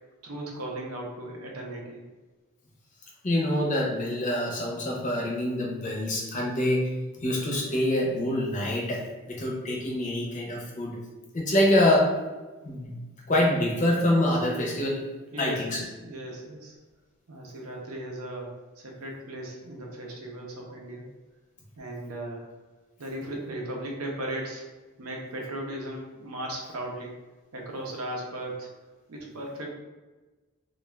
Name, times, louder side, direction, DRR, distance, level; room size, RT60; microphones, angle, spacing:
voice 1, 0.2-2.0 15.3-16.8 17.3-21.1 21.8-22.5 23.0-24.6 25.0-27.1 27.5-28.7 29.1-29.7, right 1 dB, 80° right, -1 dB, 0.7 m, -37 dB
voice 2, 3.2-6.9 7.2-9.0 9.3-11.0 11.3-12.1 12.6-13.0 13.3-15.0 15.4-15.8, left 1 dB, 35° left, -2 dB, 0.5 m, -25 dB
2.3 x 2.3 x 3.2 m, 1.2 s
head